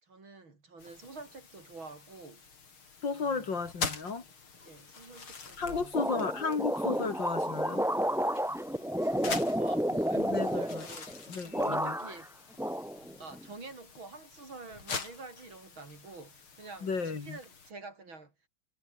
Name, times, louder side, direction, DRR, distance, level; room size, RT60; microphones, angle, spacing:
voice 1, 0.0-2.4 3.1-3.5 4.6-6.1 8.7-11.1 11.4-12.3 12.9-18.3, right 3 dB, 65° right, 5.7 m, -48 dB
sound 1, 0.8-17.7, left 5 dB, 80° left, 4.2 m, -45 dB
voice 2, 3.0-4.2 5.6-7.9 10.2-10.9 11.3-12.0 16.8-17.4, left 4 dB, 60° left, 3.5 m, -34 dB
sound 2, 5.9-11.2 11.5-12.2 12.6-13.5, equal, ahead, 0.7 m, -31 dB
omnidirectional pair, 2.3 m